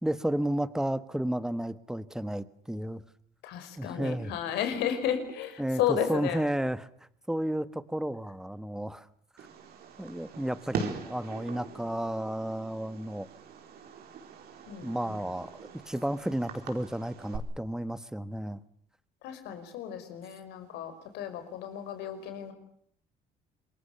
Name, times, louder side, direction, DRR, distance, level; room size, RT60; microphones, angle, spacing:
voice 1, 0.0-3.0 3.8-4.3 5.6-6.9 7.3-9.1 10.0-13.3 14.8-15.5 15.9-18.6, right 1 dB, 5° right, 15 dB, 1.4 m, -32 dB
voice 2, 3.4-6.5 14.7-15.2 19.2-22.5, left 9 dB, 85° left, 8 dB, 5.2 m, -33 dB
Fireworks, 9.4-17.4, right 6 dB, 70° right, 4.7 m, -42 dB
27.0 x 23.0 x 6.8 m, 0.62 s
cardioid pair, 110°, 17 cm